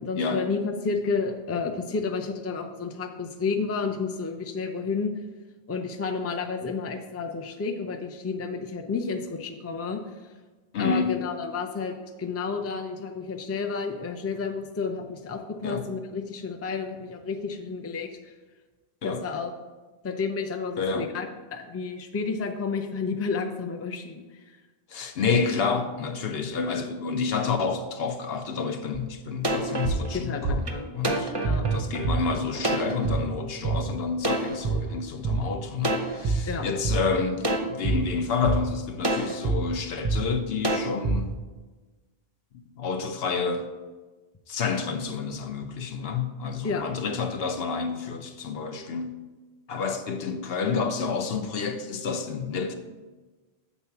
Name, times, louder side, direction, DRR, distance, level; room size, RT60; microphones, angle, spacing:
voice 1, 0.0-5.1 5.7-10.0 10.8-18.3 19.0-19.5 20.0-24.6 30.2-30.8 31.4-31.7 36.5-36.7 46.6-46.8, left 4 dB, 20° left, 0.4 m, -31 dB
voice 2, 10.7-11.2 15.6-15.8 19.0-19.2 20.8-21.2 24.9-30.7 30.9-31.3 31.6-41.3 42.8-43.7 44.5-49.1 49.7-52.7, left 5 dB, 70° left, 0.9 m, -29 dB
sound 1, 28.9-29.0 29.4-33.2 33.6-33.8 34.2-35.4 35.8-36.4 36.8-37.0 37.4-38.0 38.4-38.6 39.0-39.6 40.0-40.2 40.6-41.2, right 3 dB, 30° right, 0.6 m, -26 dB
7.1 x 4.2 x 5.8 m
omnidirectional pair, 1.1 m